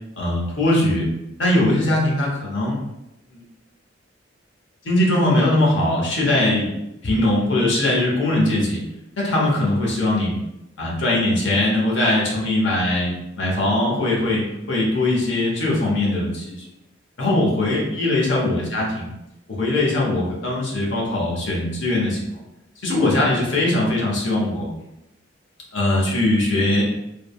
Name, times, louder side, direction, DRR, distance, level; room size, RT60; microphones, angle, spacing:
voice 1, 0.2-1.1 1.4-2.8 3.3-3.4 4.8-6.7 7.0-8.8 9.2-10.4 10.8-14.4 14.7-16.6 17.2-19.1 19.5-22.2 22.8-24.7 25.7-26.9, left 1 dB, 70° left, -3 dB, 0.8 m, -20 dB
3.3 x 2.1 x 2.2 m, 0.92 s
head